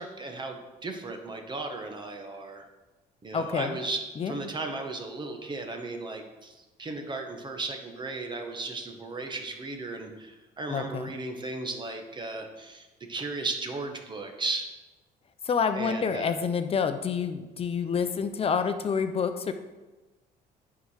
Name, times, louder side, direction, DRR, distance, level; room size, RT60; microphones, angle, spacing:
voice 1, 0.0-2.6 3.2-4.0 4.2-14.7 15.7-16.4, right 3 dB, 25° right, 4 dB, 1.3 m, -35 dB
voice 2, 3.3-3.8 4.2-4.5 10.7-11.1 15.4-19.5, left 6 dB, 35° left, 9 dB, 0.8 m, -28 dB
9.2 x 4.9 x 5.7 m, 1.2 s
cardioid pair, 110°, 17 cm